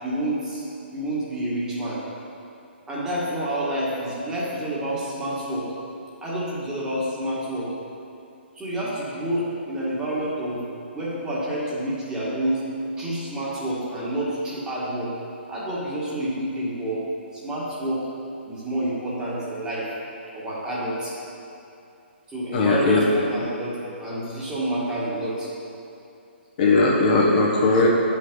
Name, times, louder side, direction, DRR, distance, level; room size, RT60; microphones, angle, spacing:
voice 1, 0.0-0.7 0.9-2.0 2.9-5.7 6.2-7.7 8.6-10.6 10.9-12.6 13.0-15.1 15.5-17.0 17.3-18.0 18.5-19.9 20.3-21.1 22.3-25.5, right 1 dB, 10° right, -8 dB, 1.9 m, -28 dB
voice 2, 22.5-23.0 26.6-27.9, left 3 dB, 45° left, -3 dB, 1.2 m, -18 dB
9.7 x 5.6 x 4.0 m, 2.7 s
hypercardioid pair, 145°, 6 cm